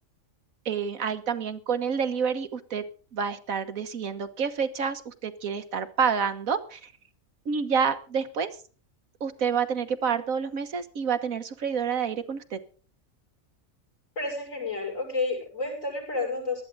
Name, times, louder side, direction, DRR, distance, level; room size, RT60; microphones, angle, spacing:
voice 1, 0.7-2.8 3.1-6.9 7.5-8.5 9.2-12.6, right 6 dB, 80° right, 9 dB, 1.7 m, -28 dB
voice 2, 14.2-16.6, left 3 dB, 70° left, 0 dB, 7.2 m, -30 dB
18.5 x 13.0 x 4.0 m, 0.39 s
omnidirectional pair, 1.4 m